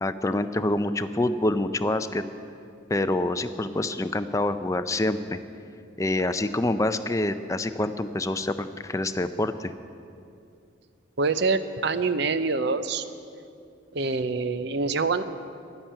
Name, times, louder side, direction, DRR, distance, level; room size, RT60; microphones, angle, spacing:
voice 1, 0.0-2.2 2.9-5.2 6.0-9.7, left 2 dB, 15° left, 10 dB, 0.4 m, -26 dB
voice 2, 11.2-13.0 13.9-15.2, right 4 dB, 60° right, 12 dB, 0.6 m, -25 dB
11.0 x 10.0 x 8.8 m, 2.5 s
head